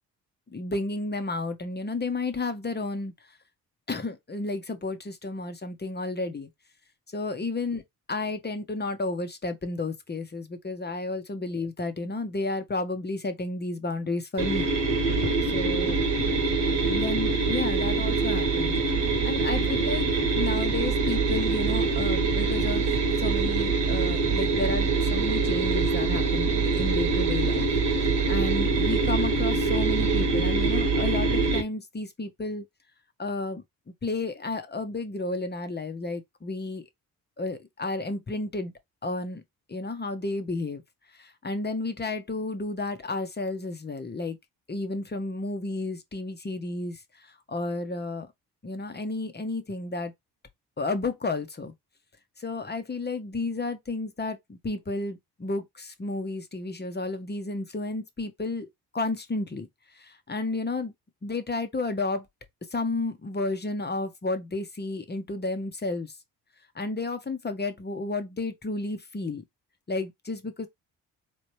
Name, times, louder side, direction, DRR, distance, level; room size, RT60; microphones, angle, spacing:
voice 1, 0.5-3.1 3.9-6.5 7.1-7.8 8.1-14.7 15.4-16.0 16.8-18.8 19.2-20.1 20.3-22.9 23.2-32.6 33.2-33.6 34.0-36.8 37.4-38.7 39.0-39.4 39.7-40.8 41.2-44.4 44.7-48.3 48.6-50.1 50.8-51.7 52.4-58.7 58.9-59.7 59.9-60.9 61.2-62.3 62.7-66.1 66.7-69.4 69.9-70.7, left 3 dB, 20° left, 1.1 m, -32 dB
sound 1, 14.4-31.6, right 4 dB, 70° right, 1.5 m, -24 dB
4.2 x 2.9 x 3.2 m
hypercardioid pair, 45°, 45 cm